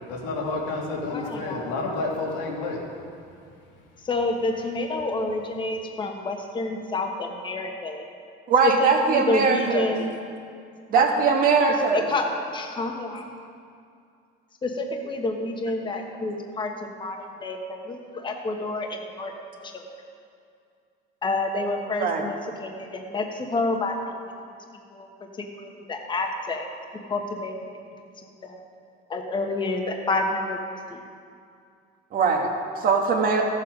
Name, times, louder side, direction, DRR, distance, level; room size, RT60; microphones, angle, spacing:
voice 1, 0.1-2.8, left 3 dB, 90° left, -2 dB, 2.4 m, -29 dB
voice 2, 1.1-1.7 4.0-8.0 8.6-10.1 10.9-11.3 11.9-12.2 12.5-13.3 14.6-16.7 17.0-19.9 21.2-24.3 24.9-25.1 25.5-26.7 27.1-27.7 28.2-28.6 29.1-30.6 30.9-31.0, left 2 dB, 20° left, 3 dB, 1.2 m, -29 dB
voice 3, 8.5-9.9 10.9-12.1 22.0-22.2 32.1-32.5 32.8-33.4, right 5 dB, 45° right, 2 dB, 1.5 m, -21 dB
14.0 x 7.1 x 5.3 m, 2.4 s
cardioid pair, 135°, 21 cm